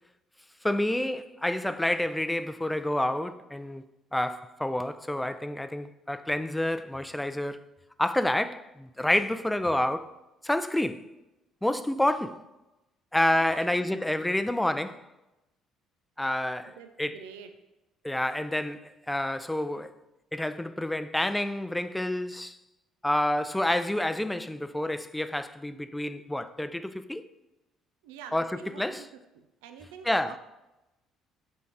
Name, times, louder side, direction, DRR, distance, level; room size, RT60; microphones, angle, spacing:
voice 1, 0.6-3.9 4.1-7.6 8.0-10.1 10.4-11.1 11.6-12.4 13.1-15.0 16.2-17.2 18.0-19.9 20.3-22.6 23.0-27.3 28.3-29.0 30.0-30.3, left 1 dB, 5° left, 0.5 m, -28 dB
voice 2, 13.3-14.0 16.7-17.5 28.0-29.1 29.3-30.4, right 7 dB, 90° right, 0.5 m, -46 dB
6.8 x 4.6 x 5.1 m
supercardioid pair, 75°, 0 cm